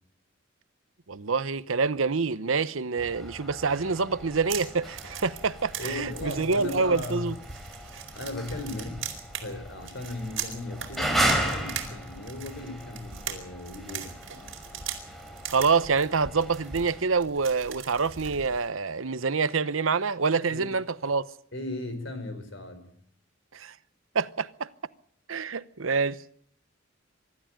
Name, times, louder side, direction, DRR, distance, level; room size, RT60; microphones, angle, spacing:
voice 1, 1.1-7.3 15.5-21.3 23.5-23.7 24.1-24.7 25.3-26.2, right 4 dB, 90° right, 0.9 m, -26 dB
sound 1, 3.0-17.0, right 1 dB, ahead, 4.2 m, -35 dB
sound 2, 4.2-18.7, right 8 dB, 75° right, 4.5 m, -40 dB
voice 2, 5.8-7.4 8.1-14.2 20.5-20.7 21.5-22.9, left 2 dB, 65° left, 4.7 m, -37 dB
24.5 x 13.0 x 8.9 m
head